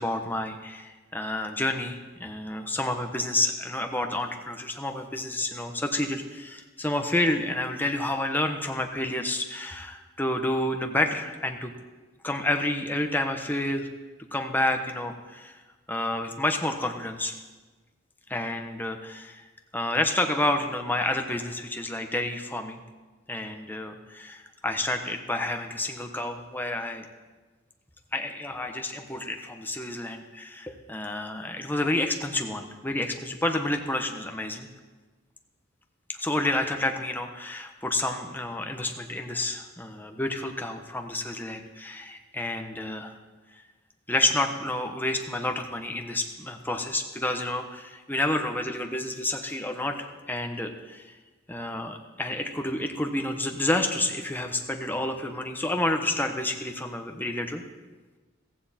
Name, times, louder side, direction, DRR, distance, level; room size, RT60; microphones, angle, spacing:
voice 1, 0.0-11.7 12.2-13.9 14.3-15.6 15.9-17.3 18.3-19.5 19.7-22.8 23.3-27.1 28.1-34.7 36.1-43.1 44.1-51.1 51.5-57.6, left 1 dB, 10° left, 4 dB, 1.1 m, -29 dB
15.5 x 15.0 x 4.3 m, 1.3 s
head